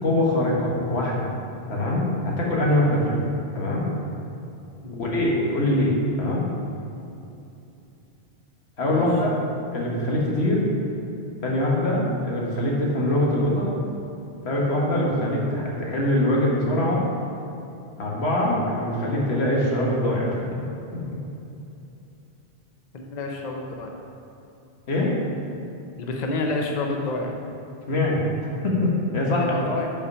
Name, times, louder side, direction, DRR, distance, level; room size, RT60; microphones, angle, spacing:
voice 1, 0.0-1.3 1.7-3.2 3.5-3.9 5.0-6.4 8.8-9.4 9.7-10.7 11.4-13.7 14.4-17.0 18.0-20.4 24.9-25.1 27.9-29.5, left 1 dB, 85° left, -3 dB, 1.5 m, -23 dB
voice 2, 22.9-23.9 26.0-27.3 29.3-29.9, left 2 dB, 50° left, 1 dB, 0.7 m, -29 dB
5.4 x 5.0 x 5.4 m, 2.8 s
omnidirectional pair, 1.1 m